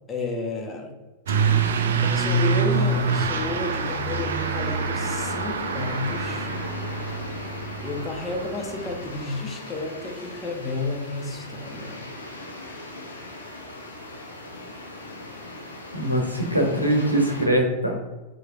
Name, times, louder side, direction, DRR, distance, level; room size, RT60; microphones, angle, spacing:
voice 1, 0.1-0.9 2.0-6.5 7.8-12.1, left 2 dB, 20° left, 1 dB, 0.8 m, -31 dB
Truck / Accelerating revving vroom, 1.3-9.2, right 4 dB, 65° right, 0.4 m, -26 dB
sound 1, 2.7-17.5, left 2 dB, 75° left, 0.6 m, -38 dB
voice 2, 15.9-18.0, right 1 dB, 90° right, 1 dB, 0.7 m, -22 dB
4.5 x 3.1 x 2.5 m, 1.2 s
figure-of-eight pair, 90°, 0 cm